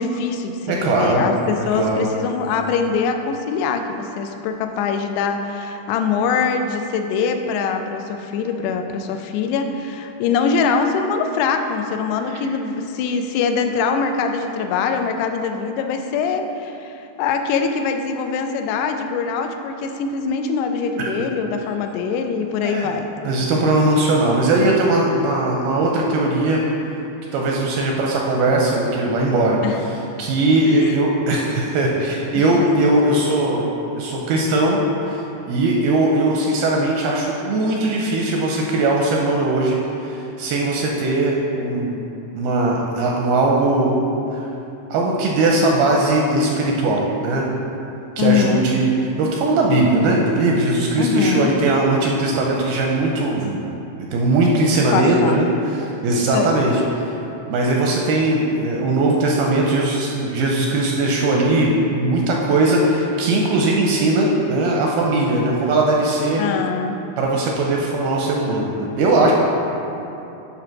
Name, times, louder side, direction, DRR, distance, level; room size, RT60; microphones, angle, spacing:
voice 1, 0.0-23.1 29.6-29.8 30.6-31.0 32.3-32.6 48.2-48.7 51.0-51.6 54.9-55.4 56.2-56.5 66.4-67.0, left 5 dB, 85° left, 6 dB, 2.6 m, -23 dB
voice 2, 0.7-1.3 1.6-2.0 12.3-12.4 21.0-21.1 22.6-22.9 23.2-26.6 27.3-33.6 34.0-35.2 35.5-42.0 42.4-43.9 44.9-47.4 48.2-48.9 49.2-53.7 54.0-55.5 55.7-56.8 57.5-66.4 67.2-69.3, right 2 dB, 85° right, -1 dB, 2.3 m, -19 dB
10.0 x 3.4 x 5.9 m, 2.8 s
omnidirectional pair, 4.8 m